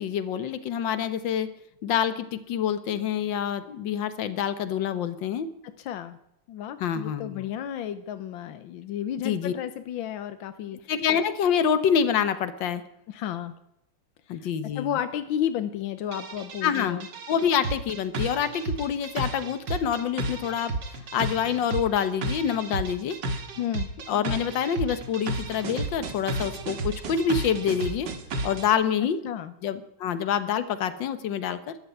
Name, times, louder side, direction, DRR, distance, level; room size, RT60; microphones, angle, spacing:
voice 1, 0.0-1.5 1.8-5.5 6.8-7.4 9.2-9.5 10.9-12.8 14.3-15.0 16.6-17.0 17.3-20.8 21.1-23.2 24.1-28.1 28.4-29.2 29.6-31.8, left 8 dB, 70° left, 12 dB, 1.8 m, -26 dB
voice 2, 5.8-6.2 6.5-10.9 13.1-13.5 14.3-14.4 14.7-17.1 23.6-23.9 29.2-29.5, left 10 dB, 90° left, 11 dB, 1.6 m, -32 dB
sound 1, 16.1-28.7, right 2 dB, 65° right, 2.2 m, -33 dB
13.5 x 11.5 x 9.2 m, 0.79 s
omnidirectional pair, 2.1 m